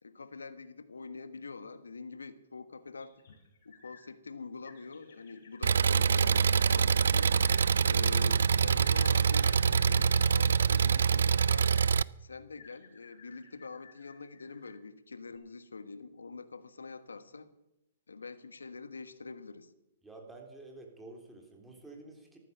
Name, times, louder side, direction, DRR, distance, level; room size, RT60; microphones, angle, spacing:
voice 1, 0.0-3.1 3.6-7.3 7.8-11.7 12.2-17.5 18.1-19.7, left 4 dB, 90° left, 11 dB, 1.4 m, -45 dB
sound 1, 3.0-4.0 4.6-7.7 8.8-11.9 12.6-14.8 15.3-15.4, left 6 dB, 60° left, 7.2 m, -57 dB
Engine, 5.6-12.0, right 6 dB, 75° right, 0.4 m, -25 dB
voice 2, 20.0-22.4, right 2 dB, 5° right, 1 dB, 3.7 m, -50 dB
14.0 x 13.0 x 6.8 m, 0.89 s
hypercardioid pair, 130°, 0 cm